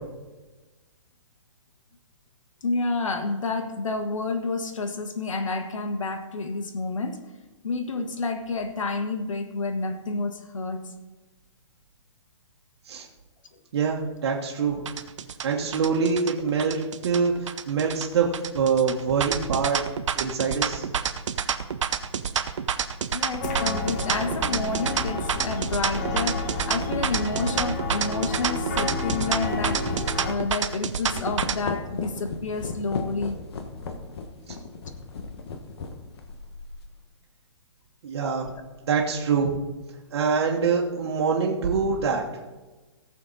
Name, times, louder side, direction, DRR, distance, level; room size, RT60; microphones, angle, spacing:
voice 1, 2.6-7.2 7.6-10.8 16.7-16.8 23.1-29.8 30.2-33.4, left 3 dB, 85° left, 8 dB, 1.5 m, -29 dB
voice 2, 13.7-14.9 15.4-19.8 20.1-20.8 38.0-38.5 38.9-39.6 40.1-42.2, right 5 dB, 55° right, -2 dB, 1.6 m, -25 dB
sound 1, 14.9-31.6, right 7 dB, 70° right, 0.8 m, -28 dB
sound 2, 23.4-30.3, left 3 dB, 35° left, 1.6 m, -31 dB
sound 3, 27.8-28.0 28.5-36.9, left 4 dB, 55° left, 1.3 m, -36 dB
17.5 x 6.9 x 4.1 m, 1.2 s
hypercardioid pair, 160°, 16 cm